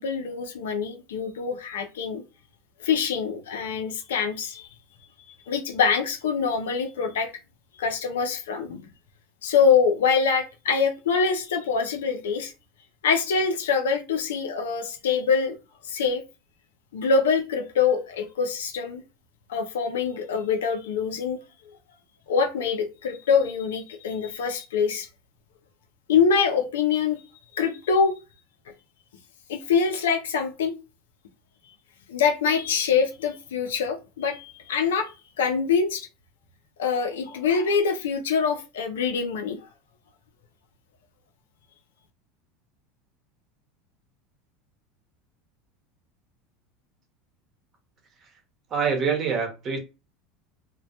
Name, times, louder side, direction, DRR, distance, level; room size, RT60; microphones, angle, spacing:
voice 1, 0.0-2.2 2.8-4.7 5.5-7.3 7.8-8.9 9.4-12.5 13.0-15.6 15.8-16.2 16.9-19.0 19.5-21.4 22.3-25.1 26.1-27.2 27.5-28.1 29.5-30.8 32.1-36.1 36.8-39.6, left 6 dB, 90° left, 0.4 m, -24 dB
voice 2, 48.7-49.8, right 6 dB, 40° right, 0.9 m, -25 dB
2.1 x 2.1 x 2.8 m
hypercardioid pair, 100°, 0 cm